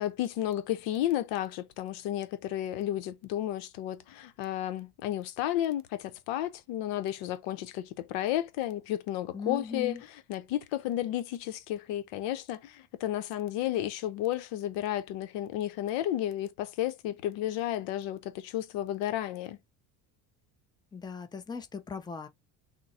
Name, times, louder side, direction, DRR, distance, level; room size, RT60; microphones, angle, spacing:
voice 1, 0.0-10.0 10.3-19.6, left 12 dB, 80° left, 0.8 m, -32 dB
voice 2, 9.3-10.0 20.9-22.3, left 5 dB, 10° left, 0.5 m, -38 dB
3.7 x 2.1 x 4.1 m
cardioid pair, 105°, 43 cm